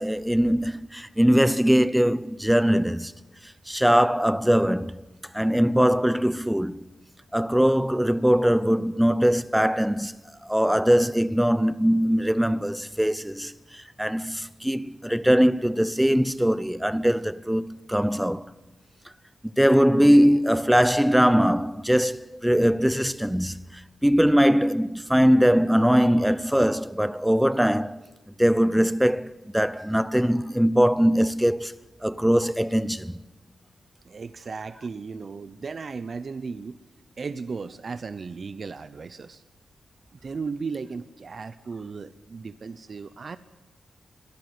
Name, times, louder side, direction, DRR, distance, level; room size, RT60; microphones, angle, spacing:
voice 1, 0.0-3.1 3.7-5.0 5.3-6.8 7.3-10.1 10.4-18.5 19.6-28.0 28.4-33.2, equal, 5° right, 0.7 m, -21 dB
voice 2, 34.0-36.8 37.2-39.4 40.2-43.4, right 4 dB, 45° right, 0.8 m, -35 dB
23.0 x 13.0 x 9.5 m
wide cardioid pair, 130°, 0 cm